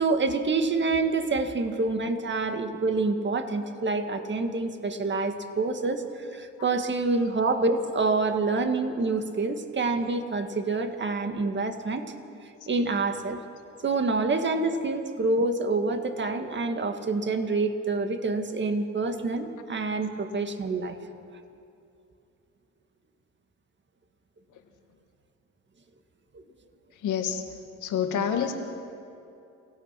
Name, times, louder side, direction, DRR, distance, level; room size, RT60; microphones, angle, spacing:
voice 1, 0.0-12.1 12.7-13.4 13.8-21.0 26.3-26.4, right 3 dB, 40° right, 6 dB, 1.9 m, -27 dB
voice 2, 26.9-28.5, left 8 dB, 80° left, 5 dB, 2.1 m, -28 dB
28.0 x 17.0 x 6.0 m, 2.7 s
cardioid pair, 90°, 30 cm